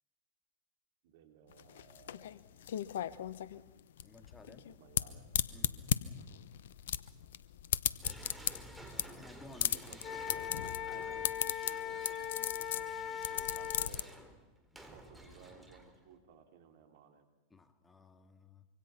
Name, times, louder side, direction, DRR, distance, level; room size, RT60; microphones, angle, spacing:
voice 1, 1.0-2.9 4.7-5.9 9.5-10.5 10.8-14.2 14.7-17.3, right 8 dB, 60° right, 5 dB, 3.6 m, -59 dB
sound 1, 1.5-14.0, left 10 dB, 70° left, 1.0 m, -36 dB
voice 2, 4.0-4.7 5.5-5.7 9.2-10.0 13.0-13.1 17.5-18.7, left 3 dB, 15° left, 8 dB, 2.0 m, -56 dB
sound 2, 8.0-16.2, right 1 dB, 5° right, 4.0 m, -53 dB
Wind instrument woodwind instrument, 10.0-13.9, left 9 dB, 40° left, 1.1 m, -40 dB
25.0 x 25.0 x 5.9 m, 1.1 s
hypercardioid pair, 100°, 0 cm